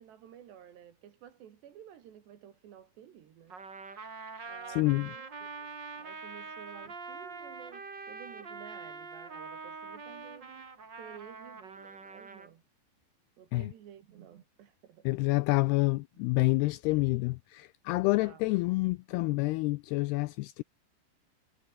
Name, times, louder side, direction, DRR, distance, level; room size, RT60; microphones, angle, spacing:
voice 1, 0.0-3.6 4.4-10.7 11.0-12.6 13.4-15.1 18.2-18.4, right 10 dB, 70° right, 4.4 m, -52 dB
Trumpet, 3.5-12.5, right 4 dB, 30° right, 3.1 m, -44 dB
voice 2, 4.8-5.1 13.5-13.7 15.1-20.6, left 22 dB, 85° left, 2.3 m, -28 dB
omnidirectional pair, 5.2 m